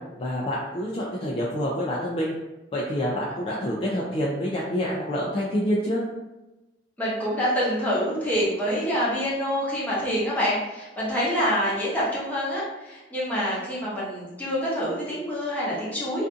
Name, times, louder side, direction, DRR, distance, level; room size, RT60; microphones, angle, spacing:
voice 1, 0.2-2.3 2.7-6.0, equal, 30° left, -5 dB, 0.3 m, -27 dB
voice 2, 7.0-16.3, equal, 10° left, -8 dB, 0.7 m, -26 dB
2.5 x 2.4 x 2.5 m, 1.1 s
head